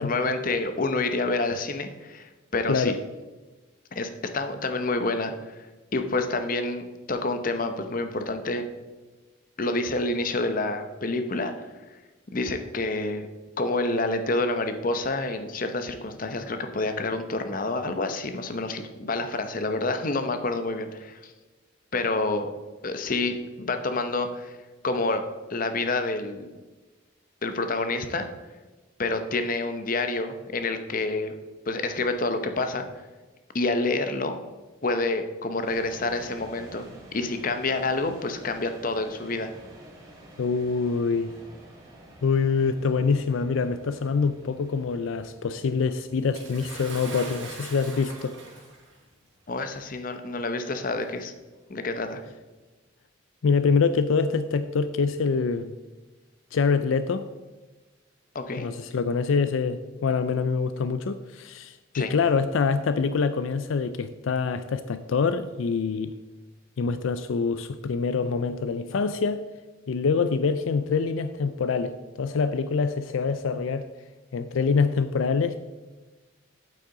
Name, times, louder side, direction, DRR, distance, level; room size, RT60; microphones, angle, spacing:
voice 1, 0.0-3.0 3.9-5.7 5.9-8.7 9.6-11.7 12.3-13.3 13.6-21.3 21.9-22.5 22.8-24.6 24.8-25.2 25.5-26.5 27.4-28.3 29.0-31.3 31.7-32.9 33.5-34.4 34.8-39.5 49.5-51.3 51.7-52.2 58.3-58.7 61.9-62.1, left 2 dB, 45° left, 8 dB, 0.7 m, -28 dB
sound 1, 35.6-52.6, right 1 dB, 20° right, 2.1 m, -50 dB
voice 2, 40.4-41.3 42.2-48.4 53.4-55.7 56.5-57.2 58.6-66.1 66.8-69.4 69.9-73.9 74.3-75.6, left 5 dB, 80° left, 11 dB, 0.4 m, -25 dB
Bathtub (filling or washing) / Splash splatter, 46.3-48.9 49.9-50.0 51.0-51.1, right 3 dB, 65° right, 2.1 m, -41 dB
8.5 x 8.3 x 3.8 m, 1.2 s
head